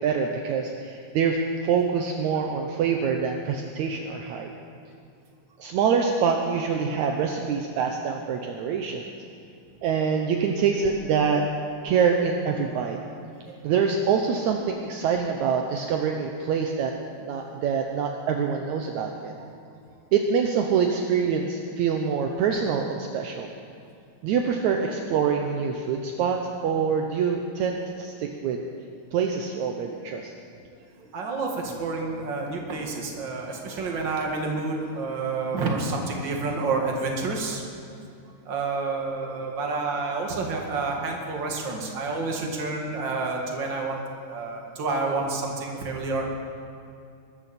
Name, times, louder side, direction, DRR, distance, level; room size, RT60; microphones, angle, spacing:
voice 1, 0.0-4.5 5.6-9.1 9.8-11.4 11.8-13.0 13.6-19.5 20.1-23.5 24.2-28.6 29.1-30.3, right 6 dB, 70° right, 2 dB, 2.1 m, -25 dB
voice 2, 31.1-37.6 38.5-44.0 44.3-46.3, right 3 dB, 40° right, 0 dB, 2.3 m, -29 dB
23.0 x 13.5 x 4.3 m, 2.5 s
omnidirectional pair, 3.6 m